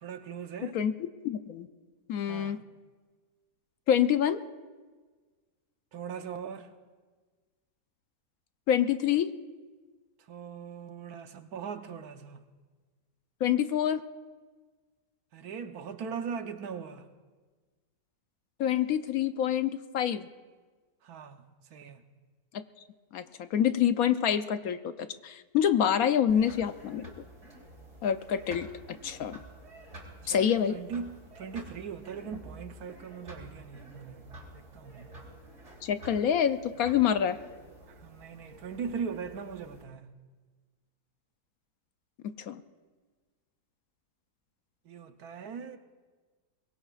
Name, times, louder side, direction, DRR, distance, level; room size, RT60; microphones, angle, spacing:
voice 1, 0.0-0.8 2.3-2.6 5.9-6.7 10.3-12.4 15.3-17.0 21.0-21.4 21.7-22.0 30.3-34.2 34.5-35.1 38.0-40.0 44.9-45.8, right 6 dB, 70° right, 1.3 m, -40 dB
voice 2, 0.6-1.7 2.1-2.6 3.9-4.4 8.7-9.3 13.4-14.0 18.6-20.3 22.5-22.6 23.1-27.2 28.0-29.4 30.3-30.8 35.8-37.4 42.2-42.6, left 9 dB, 70° left, 1.0 m, -27 dB
sound 1, 26.3-39.8, right 1 dB, 45° right, 3.6 m, -50 dB
23.0 x 21.5 x 2.4 m
omnidirectional pair, 1.7 m